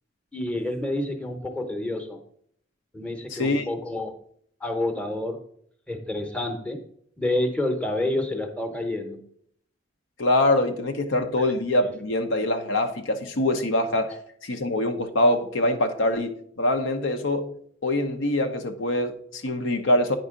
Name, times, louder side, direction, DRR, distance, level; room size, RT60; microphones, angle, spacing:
voice 1, 0.3-2.2 2.9-4.1 4.6-5.4 5.9-6.8 7.2-9.2 11.4-11.5, left 1 dB, 5° left, 0.8 m, -28 dB
voice 2, 3.3-3.7 10.2-14.1 14.4-17.5 17.8-20.2, left 1 dB, 85° left, 0.8 m, -24 dB
9.1 x 5.4 x 3.7 m
head